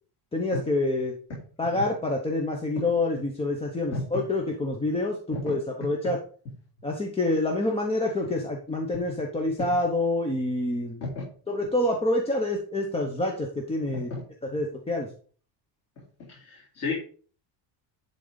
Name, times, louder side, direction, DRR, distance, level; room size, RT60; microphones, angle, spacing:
voice 1, 0.3-1.2 1.6-6.2 6.8-11.0 11.5-14.1 14.5-15.1, left 2 dB, 15° left, 1 dB, 0.9 m, -27 dB
voice 2, 3.9-4.2 5.3-5.5 5.8-6.2 9.1-9.2 11.0-11.2 13.9-14.2 16.3-16.9, left 2 dB, 35° left, -5 dB, 3.5 m, -33 dB
11.0 x 4.0 x 5.1 m, 0.41 s
cardioid pair, 180°, 44 cm